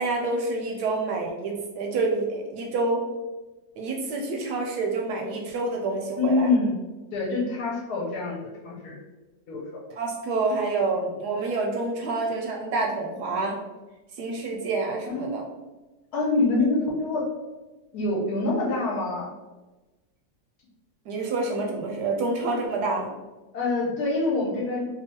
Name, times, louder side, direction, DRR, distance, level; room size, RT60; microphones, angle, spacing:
voice 1, 0.0-3.0 3.8-6.5 9.9-13.6 14.1-15.4 21.1-23.1, right 3 dB, 70° right, 1 dB, 1.0 m, -28 dB
voice 2, 6.2-6.7 7.1-9.0 9.5-9.8 15.0-15.3 16.1-17.3 17.9-19.3 23.5-24.8, left 3 dB, 65° left, -2 dB, 1.2 m, -25 dB
2.9 x 2.3 x 4.1 m, 1.1 s
omnidirectional pair, 2.0 m